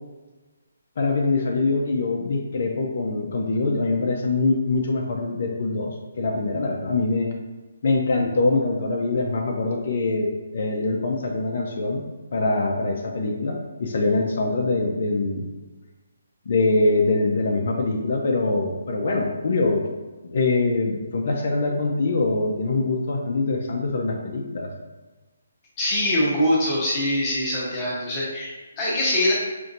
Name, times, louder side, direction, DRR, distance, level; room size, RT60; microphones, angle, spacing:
voice 1, 1.0-7.3 7.8-12.0 12.3-15.5 16.5-19.9 20.2-24.7, left 3 dB, 55° left, 1 dB, 0.5 m, -23 dB
voice 2, 25.8-29.3, left 1 dB, 25° left, -6 dB, 1.1 m, -23 dB
5.6 x 2.6 x 2.6 m, 1.2 s
hypercardioid pair, 155°, 0 cm